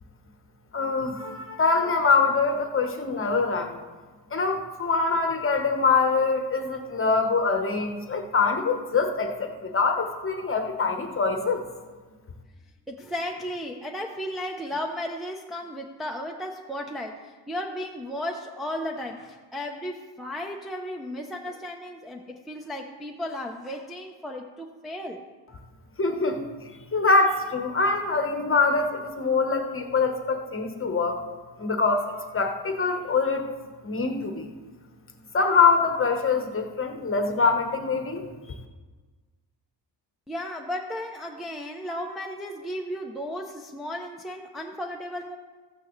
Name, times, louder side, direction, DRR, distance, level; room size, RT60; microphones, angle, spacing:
voice 1, 0.7-3.8 4.3-11.6 26.0-26.4 26.9-31.2 31.6-33.4 33.8-34.5 35.3-38.3, left 4 dB, 30° left, 4 dB, 1.1 m, -24 dB
voice 2, 12.9-17.2 17.5-25.2 40.3-45.4, left 1 dB, ahead, 0 dB, 0.6 m, -34 dB
14.5 x 8.9 x 3.1 m, 1.4 s
cardioid pair, 115°, 44 cm